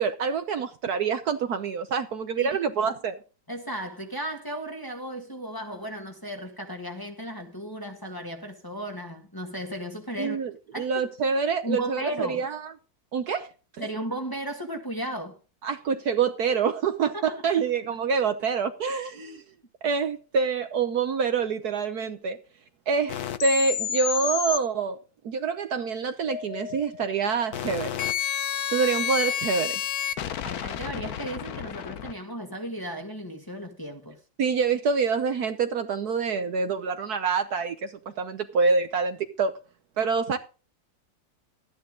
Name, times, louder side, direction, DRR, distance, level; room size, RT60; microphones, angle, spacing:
voice 1, 0.0-3.2 10.2-10.5 10.8-12.7 13.1-13.5 13.8-13.9 15.6-19.4 19.8-22.4 22.9-25.0 25.2-27.9 28.7-29.8 34.4-39.5 40.0-40.4, right 5 dB, 60° right, 1.3 m, -26 dB
voice 2, 3.5-11.0 11.6-12.5 13.8-15.4 17.1-17.4 19.1-19.4 30.4-34.2, right 1 dB, 10° left, 1.6 m, -35 dB
sound 1, 23.1-24.6 26.3-32.1, left 10 dB, 60° left, 1.2 m, -30 dB
13.5 x 9.6 x 3.8 m
omnidirectional pair, 2.0 m